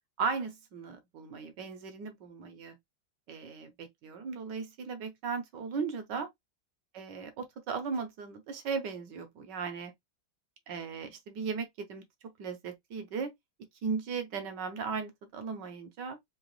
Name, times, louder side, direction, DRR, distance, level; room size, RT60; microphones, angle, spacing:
voice 1, 0.2-2.8 3.3-6.3 6.9-9.9 10.7-12.0 12.4-13.3 13.8-16.2, right 5 dB, 65° right, 1.4 m, -37 dB
3.8 x 2.9 x 3.1 m
omnidirectional pair, 2.2 m